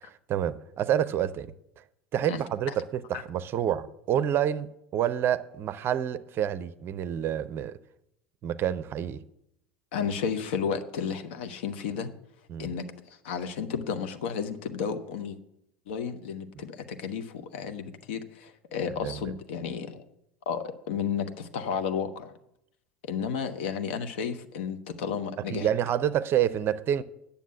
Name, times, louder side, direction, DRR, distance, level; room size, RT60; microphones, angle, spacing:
voice 1, 0.0-1.5 2.1-4.7 4.9-7.8 8.4-9.2 12.5-12.7 19.0-19.2 25.5-27.0, right 10 dB, 35° right, 0.6 m, -28 dB
voice 2, 9.9-12.1 12.6-15.4 15.9-20.0 20.5-22.3 23.1-25.7, left 6 dB, 60° left, 1.0 m, -32 dB
9.3 x 7.0 x 8.0 m
figure-of-eight pair, 75°, 7 cm